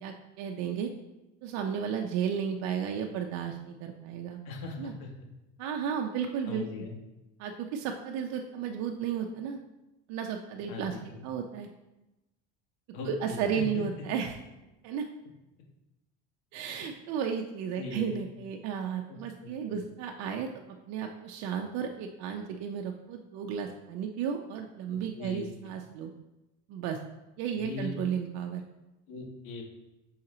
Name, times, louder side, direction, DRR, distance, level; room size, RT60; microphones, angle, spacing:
voice 1, 0.0-0.9 1.4-4.4 4.8-4.9 5.6-6.8 7.4-9.6 10.1-11.0 11.2-11.7 13.0-14.4 14.8-15.1 16.5-20.5 20.9-26.1 26.7-27.0 27.4-28.6, right 7 dB, 60° right, 3 dB, 0.6 m, -33 dB
voice 2, 4.5-5.1 6.5-6.9 10.7-11.0 12.9-13.4 13.7-13.8 17.8-18.2 19.1-19.8 25.1-25.5 27.5-28.0 29.1-29.6, left 3 dB, 85° left, -1 dB, 1.7 m, -39 dB
5.7 x 4.3 x 3.8 m, 0.98 s
cardioid pair, 155°, 31 cm